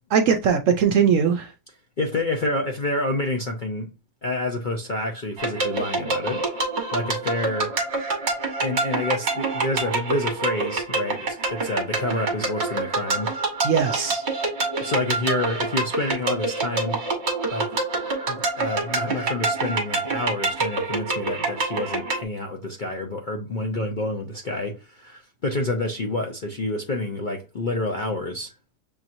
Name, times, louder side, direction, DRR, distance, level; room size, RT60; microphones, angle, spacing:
voice 1, 0.1-1.5 13.6-14.2, right 7 dB, 70° right, 0.8 m, -20 dB
voice 2, 2.0-3.9 4.2-6.4 6.9-7.7 8.6-13.3 14.8-17.0 17.5-17.8 18.3-28.5, left 2 dB, 50° left, 0.6 m, -28 dB
sound 1, 5.4-22.2, right 3 dB, 45° right, 1.3 m, -26 dB
6.8 x 2.9 x 2.6 m
omnidirectional pair, 1.7 m